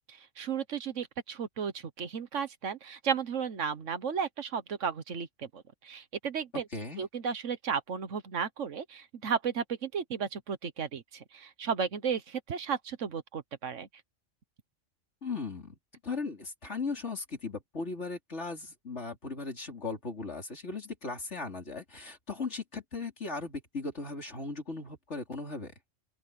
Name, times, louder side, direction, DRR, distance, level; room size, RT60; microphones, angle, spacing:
voice 1, 0.1-6.6 7.0-13.9, right 6 dB, 70° right, 1.5 m, -34 dB
voice 2, 6.5-7.0 15.2-15.8 16.0-25.7, left 4 dB, 60° left, 4.1 m, -37 dB
open air
omnidirectional pair, 1.3 m